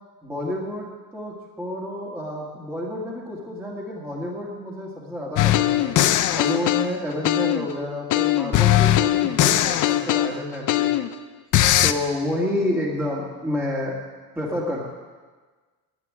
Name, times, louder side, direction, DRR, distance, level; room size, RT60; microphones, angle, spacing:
voice 1, 0.2-5.9 6.4-10.9 11.8-14.0 14.4-14.8, left 1 dB, 5° right, -4 dB, 1.9 m, -29 dB
sound 1, 5.4-7.7 8.1-11.1 11.5-11.9, left 13 dB, 50° left, 0.7 m, -20 dB
11.0 x 9.1 x 9.5 m, 1.4 s
cardioid pair, 145°, 40 cm